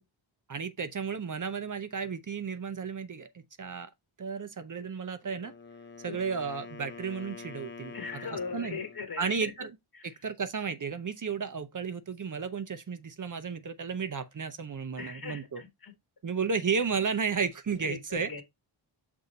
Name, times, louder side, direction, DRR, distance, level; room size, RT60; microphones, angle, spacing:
voice 1, 0.5-3.9 4.2-5.5 6.0-7.9 8.5-8.8 9.2-9.7 10.0-15.6 16.2-18.4, right 5 dB, 40° right, 0.7 m, -33 dB
Wind instrument woodwind instrument, 5.2-9.1, left 5 dB, 25° left, 0.6 m, -46 dB
voice 2, 7.9-10.2 15.0-16.0 17.8-18.4, left 5 dB, 50° left, 1.3 m, -40 dB
6.6 x 3.5 x 4.1 m
wide cardioid pair, 125°, 48 cm